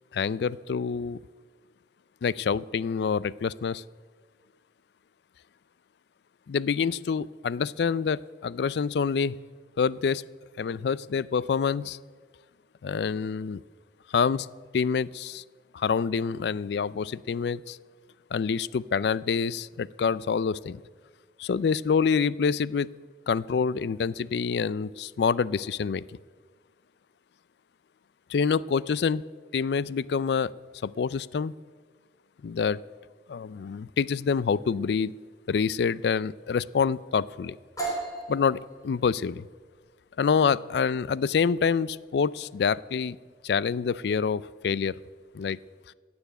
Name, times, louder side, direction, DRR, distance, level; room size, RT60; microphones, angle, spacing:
voice 1, 0.1-1.2 2.2-3.8 6.5-9.4 9.8-10.2 10.6-12.0 12.8-13.6 14.1-14.5 14.7-15.4 15.7-17.8 18.3-20.8 21.4-22.9 23.3-26.0 28.3-29.2 29.5-30.5 30.8-31.5 32.4-32.8 33.3-35.1 35.5-37.6 38.3-39.4 40.2-43.2 43.4-45.0 45.3-45.6, left 6 dB, 70° left, 20 dB, 0.4 m, -26 dB
sound 1, 37.8-45.4, right 3 dB, 20° left, 3.4 m, -40 dB
16.5 x 7.0 x 9.0 m, 1.5 s
head